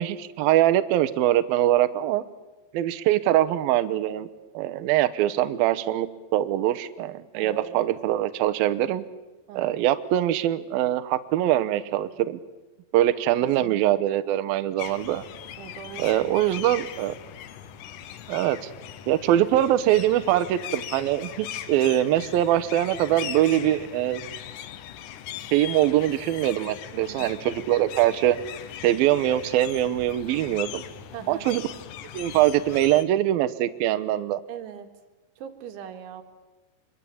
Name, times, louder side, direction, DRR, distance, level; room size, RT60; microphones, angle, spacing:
voice 1, 0.0-2.2 2.7-4.3 4.5-9.0 9.5-12.4 12.9-15.2 16.0-17.1 18.3-18.7 19.1-24.2 25.5-28.4 28.8-30.8 31.3-31.6 32.1-34.4, right 13 dB, 70° right, 13 dB, 2.4 m, -23 dB
voice 2, 7.3-7.9 9.5-9.8 12.0-12.1 13.6-14.0 15.6-16.8 27.1-27.4 31.1-31.5 34.5-34.9 35.4-36.2, right 9 dB, 90° right, 6 dB, 4.3 m, -41 dB
sound 1, 14.8-33.0, left 10 dB, 75° left, 1.9 m, -39 dB
27.0 x 22.5 x 8.7 m, 1.2 s
omnidirectional pair, 5.2 m